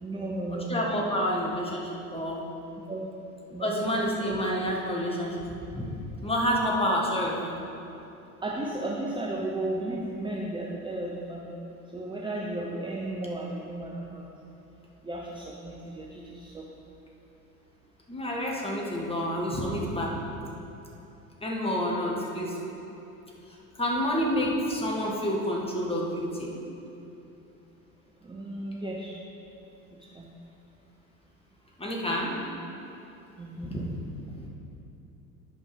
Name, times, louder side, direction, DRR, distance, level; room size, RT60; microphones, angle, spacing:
voice 1, 0.0-0.7 1.2-1.3 2.9-3.1 3.5-3.8 8.4-11.5 11.9-14.2 15.0-16.7 28.2-29.1 29.9-30.3 32.0-32.1 33.4-33.8, right 2 dB, 10° right, -3 dB, 0.8 m, -34 dB
voice 2, 0.5-2.4 3.6-5.4 5.7-7.4 18.1-20.2 21.4-22.6 23.8-26.6 31.8-32.4 33.6-33.9 34.4-34.5, equal, 15° left, -2 dB, 1.8 m, -29 dB
10.0 x 5.3 x 5.2 m, 2.9 s
figure-of-eight pair, 70°, 44 cm